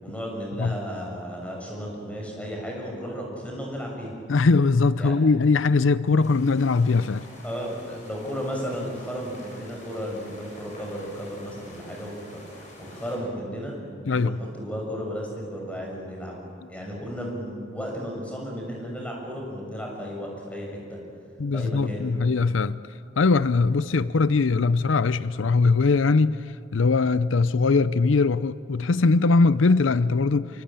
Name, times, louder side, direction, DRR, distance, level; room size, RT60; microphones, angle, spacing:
voice 1, 0.0-4.1 5.0-5.1 7.4-13.8 14.1-16.4 16.7-21.0 21.5-22.1, equal, 5° left, 6.4 m, -34 dB
voice 2, 4.3-7.3 14.1-14.4 21.4-22.8 23.2-26.4 26.7-30.6, left 4 dB, 85° left, 0.6 m, -21 dB
sound 1, 6.2-13.2, left 1 dB, 40° left, 6.8 m, -48 dB
26.0 x 24.0 x 8.9 m
head